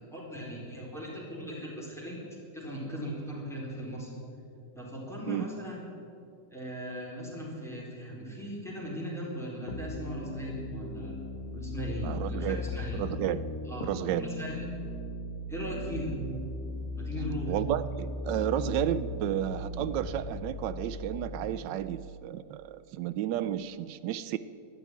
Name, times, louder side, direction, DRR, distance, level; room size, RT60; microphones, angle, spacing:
voice 1, 0.0-2.2 2.5-4.1 4.7-5.8 6.5-11.2 11.5-13.0 13.7-13.8 14.2-14.6 15.5-16.2 16.9-17.5, equal, ahead, -5 dB, 4.2 m, -38 dB
sound 1, 9.7-21.7, left 1 dB, 75° left, 1.9 m, -37 dB
voice 2, 12.0-12.6 12.9-13.5 13.8-14.3 17.5-24.4, right 11 dB, 90° right, 14 dB, 1.2 m, -32 dB
12.5 x 12.0 x 9.6 m, 2.6 s
omnidirectional pair, 1.9 m